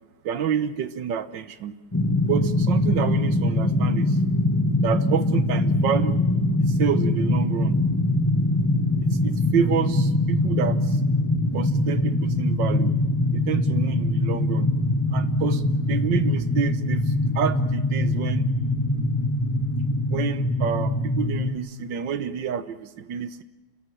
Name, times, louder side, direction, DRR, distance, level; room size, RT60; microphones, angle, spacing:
voice 1, 0.2-1.8 2.2-4.2 4.8-6.2 6.7-7.8 9.1-11.0 11.5-13.0 13.3-14.7 15.1-18.5 20.1-23.4, right 8 dB, 65° right, 12 dB, 1.7 m, -28 dB
sound 1, 1.9-21.5, left 1 dB, 10° left, 1.3 m, -23 dB
29.5 x 14.5 x 10.0 m, 1.1 s
omnidirectional pair, 2.2 m